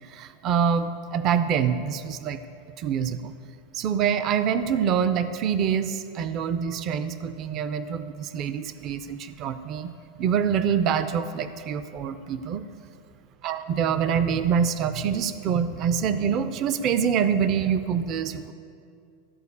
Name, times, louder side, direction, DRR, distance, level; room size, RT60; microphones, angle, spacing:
voice 1, 0.1-2.4 2.8-3.3 3.7-9.9 10.2-12.6 13.4-18.5, right 7 dB, 35° right, 12 dB, 0.4 m, -25 dB
13.5 x 4.6 x 8.3 m, 2.4 s
supercardioid pair, 150°, 0 cm